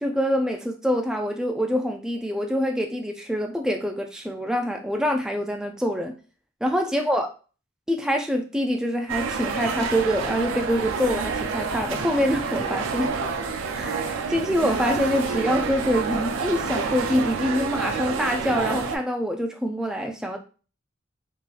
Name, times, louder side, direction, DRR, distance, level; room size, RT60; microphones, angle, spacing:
voice 1, 0.0-6.1 6.6-7.3 7.9-13.1 13.7-20.4, equal, 5° right, 0.3 m, -25 dB
sound 1, 9.1-19.0, right 5 dB, 75° right, 0.5 m, -28 dB
3.7 x 2.8 x 2.5 m
head